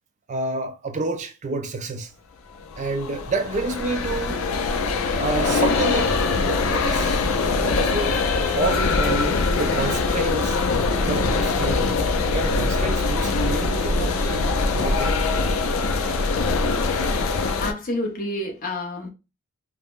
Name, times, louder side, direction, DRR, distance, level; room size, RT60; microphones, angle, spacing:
voice 1, 0.3-2.1 2.8-4.5 5.2-8.2 8.5-10.6 11.0-15.2, right 3 dB, 35° right, 0.4 m, -29 dB
sound 1, 2.6-17.7, left 3 dB, 65° left, 0.4 m, -23 dB
voice 2, 17.3-19.1, left 1 dB, 40° left, 0.7 m, -29 dB
3.5 x 2.1 x 2.3 m
head